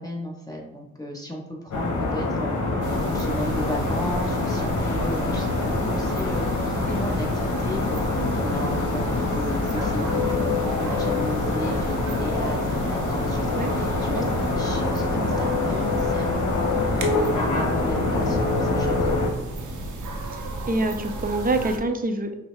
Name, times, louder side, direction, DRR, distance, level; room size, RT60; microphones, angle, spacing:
voice 1, 0.0-14.2 14.5-19.7, left 1 dB, 10° left, -1 dB, 1.0 m, -34 dB
sound 1, 1.7-19.3, left 3 dB, 70° left, 0.9 m, -25 dB
sound 2, 2.7-21.5, equal, 45° left, 1.4 m, -40 dB
sound 3, 2.8-21.8, right 2 dB, 70° right, 0.7 m, -34 dB
voice 2, 20.3-22.4, right 2 dB, 30° right, 6 dB, 0.6 m, -26 dB
5.4 x 2.1 x 3.1 m, 0.89 s
supercardioid pair, 45°, 31 cm